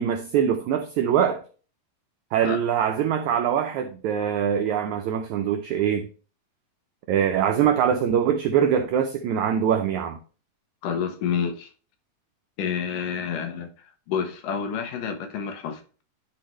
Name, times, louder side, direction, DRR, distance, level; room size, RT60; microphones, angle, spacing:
voice 1, 0.0-1.4 2.3-6.1 7.1-10.2, right 8 dB, 85° right, 1.7 m, -23 dB
voice 2, 10.8-11.7 12.6-16.0, left 7 dB, 70° left, 2.4 m, -29 dB
11.0 x 4.3 x 3.1 m
omnidirectional pair, 4.2 m